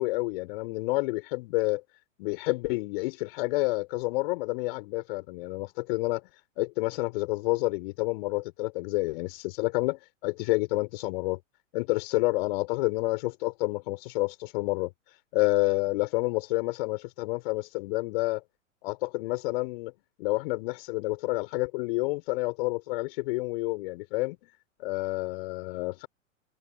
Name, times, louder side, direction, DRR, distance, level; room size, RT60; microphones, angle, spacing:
voice 1, 0.0-1.8 2.2-6.2 6.6-11.4 11.7-14.9 15.3-18.4 18.8-19.9 20.2-24.4 24.8-26.1, left 23 dB, 45° left, 4.3 m, -29 dB
figure-of-eight pair, 105°, 41 cm